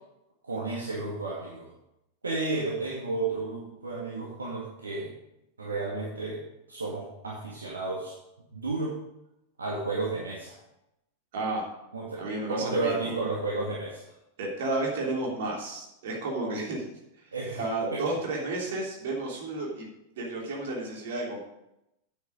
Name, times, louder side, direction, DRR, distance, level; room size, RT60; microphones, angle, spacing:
voice 1, 0.4-1.7 2.2-5.1 5.6-6.4 6.7-8.1 8.5-9.0 9.6-10.6 11.9-12.2 12.5-14.0 17.3-17.6 17.9-18.0, right 3 dB, 75° right, -4 dB, 1.9 m, -32 dB
voice 2, 11.3-11.6 12.2-13.1 14.4-16.8 17.5-19.9 20.2-21.4, right 2 dB, 55° right, -2 dB, 3.1 m, -32 dB
9.1 x 7.4 x 5.2 m, 0.86 s
figure-of-eight pair, 90°, 0 cm